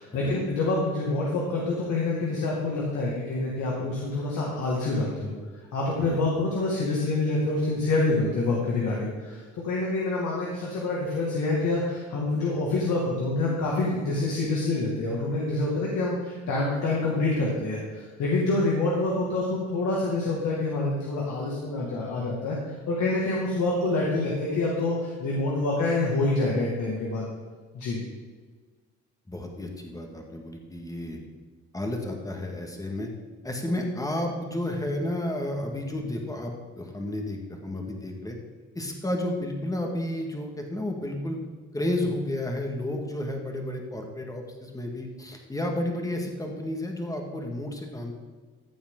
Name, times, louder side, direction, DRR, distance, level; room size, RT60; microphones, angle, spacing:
voice 1, 0.0-5.3 5.7-27.2 27.7-28.0, left 2 dB, 75° left, -4 dB, 2.1 m, -27 dB
voice 2, 29.3-31.2 31.7-33.1 33.4-38.4 38.8-41.4 41.7-48.1, left 1 dB, 10° left, 2 dB, 1.8 m, -32 dB
14.5 x 7.1 x 3.8 m, 1.5 s
cardioid pair, 90°, 30 cm